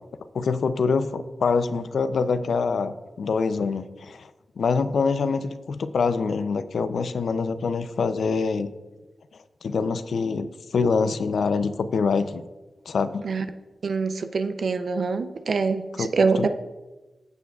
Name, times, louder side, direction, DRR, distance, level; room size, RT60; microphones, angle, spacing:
voice 1, 0.3-4.3 4.6-8.7 9.6-12.4 12.9-13.3 15.9-16.5, left 5 dB, 90° left, 11 dB, 0.4 m, -25 dB
voice 2, 13.8-16.5, right 4 dB, 70° right, 8 dB, 0.5 m, -24 dB
15.5 x 6.9 x 2.4 m, 1.2 s
wide cardioid pair, 90°, 0 cm